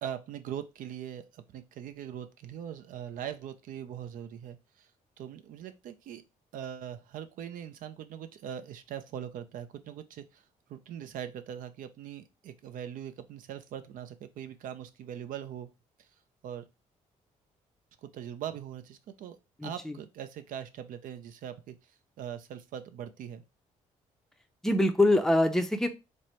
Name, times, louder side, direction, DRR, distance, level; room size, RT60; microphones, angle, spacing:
voice 1, 0.0-4.9 5.2-6.2 6.5-10.4 10.7-15.7 16.4-16.7 18.0-19.4 19.6-21.8 22.2-23.4, right 9 dB, 75° right, 10 dB, 0.5 m, -41 dB
voice 2, 19.6-20.0 24.6-25.9, left 1 dB, 5° left, 6 dB, 0.5 m, -24 dB
4.3 x 2.1 x 3.1 m, 0.26 s
cardioid pair, 80°, 14 cm